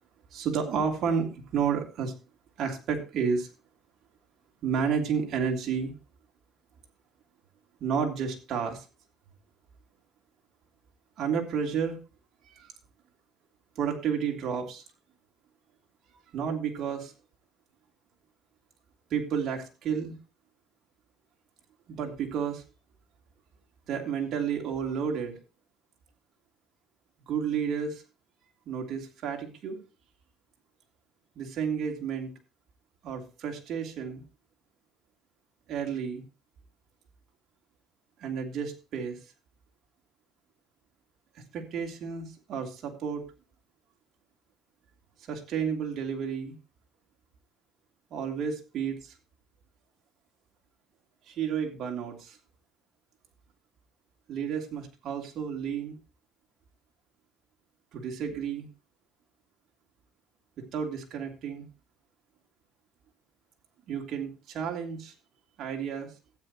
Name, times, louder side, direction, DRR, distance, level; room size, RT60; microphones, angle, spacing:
voice 1, 0.3-2.1 2.6-3.5 4.6-5.9 7.8-8.8 11.2-12.0 12.6-12.7 13.8-14.8 16.3-17.1 19.1-20.2 21.9-22.6 23.9-25.4 27.3-28.0 28.7-29.8 31.4-32.3 33.0-34.2 35.7-36.2 38.2-39.2 41.5-43.2 45.3-46.5 48.1-49.1 51.3-52.4 54.3-56.0 57.9-58.7 60.7-61.7 63.9-65.1 65.6-66.1, right 7 dB, 55° right, 1 dB, 2.9 m, -31 dB
15.0 x 8.9 x 3.0 m, 0.30 s
cardioid pair, 115°, 0 cm